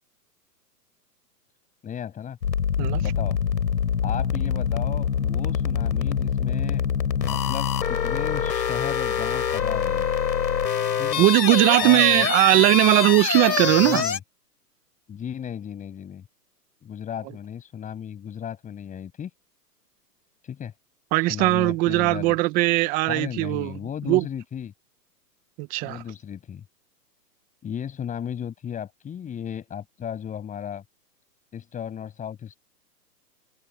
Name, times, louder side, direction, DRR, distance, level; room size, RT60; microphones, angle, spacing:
voice 1, 1.8-2.4 3.0-3.4 4.0-6.8 7.2-10.1 11.0-11.2 11.8-12.3 13.8-14.2 15.1-16.2 16.8-19.3 20.4-20.7 21.2-22.3 23.1-24.7 25.8-26.6 27.6-30.8 31.5-32.6, left 8 dB, 15° left, 7.8 m, -35 dB
sound 1, 2.4-14.2, left 8 dB, 85° left, 3.9 m, -25 dB
voice 2, 11.2-14.0 21.1-23.7 24.1-24.2 25.6-26.0, right 20 dB, 20° right, 0.7 m, -19 dB
hypercardioid pair, 145°, 49 cm